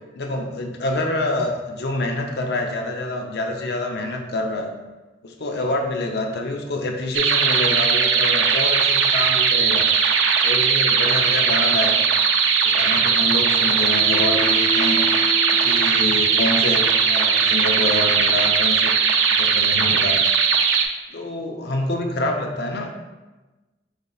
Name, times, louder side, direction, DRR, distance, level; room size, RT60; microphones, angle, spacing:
voice 1, 0.2-4.7 5.2-9.9 10.4-12.1 12.6-15.0 15.5-18.9 19.3-20.2 21.1-22.9, left 2 dB, 60° left, 2 dB, 0.5 m, -27 dB
sound 1, 7.1-20.9, right 6 dB, 90° right, 0.4 m, -19 dB
Bowed string instrument, 13.8-17.7, left 2 dB, 40° left, 1.4 m, -32 dB
5.1 x 4.1 x 2.3 m, 1.2 s
head